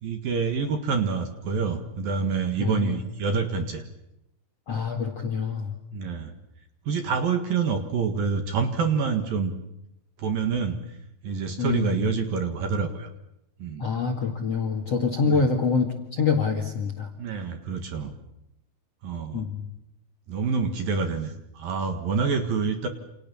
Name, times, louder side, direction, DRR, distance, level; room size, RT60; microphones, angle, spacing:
voice 1, 0.0-3.8 5.9-6.3 6.9-9.5 10.2-10.8 11.2-13.1 13.6-13.8 15.2-15.4 17.2-18.1 19.0-19.5 20.3-22.9, right 5 dB, 55° right, 7 dB, 2.9 m, -27 dB
voice 2, 2.6-3.0 4.7-5.7 11.6-11.9 13.8-17.1 19.3-19.7, left 5 dB, 50° left, 2 dB, 2.1 m, -26 dB
29.0 x 28.0 x 7.1 m, 0.83 s
omnidirectional pair, 5.6 m